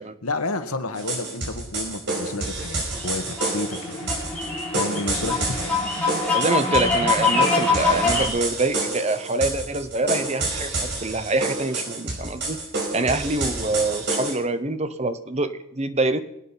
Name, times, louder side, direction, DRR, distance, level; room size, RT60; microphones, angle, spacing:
voice 1, 0.2-4.1 4.7-5.7, left 2 dB, 85° left, 7 dB, 1.6 m, -30 dB
sound 1, 0.9-14.3, right 2 dB, 55° right, 5.2 m, -29 dB
sound 2, 2.9-8.3, left 4 dB, 5° left, 3.9 m, -24 dB
voice 2, 6.3-12.6 12.9-16.2, right 2 dB, 30° right, 11 dB, 0.9 m, -25 dB
24.0 x 8.7 x 5.8 m, 0.83 s
head